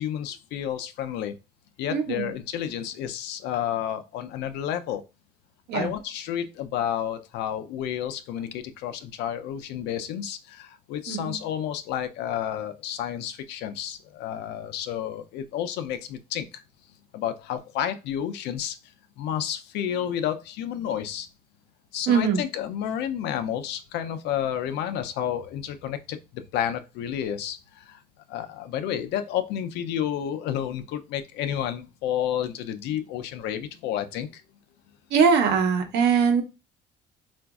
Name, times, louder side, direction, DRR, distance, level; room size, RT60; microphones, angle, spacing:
voice 1, 0.0-1.3 1.8-5.0 5.7-16.6 17.1-18.8 19.2-21.3 21.9-28.0 28.3-34.4, left 10 dB, 85° left, 0.5 m, -31 dB
voice 2, 1.9-2.3 5.7-5.9 11.1-11.3 22.1-22.4 35.1-36.4, right 6 dB, 85° right, 0.9 m, -21 dB
3.9 x 2.5 x 2.3 m
cardioid pair, 110°, 17 cm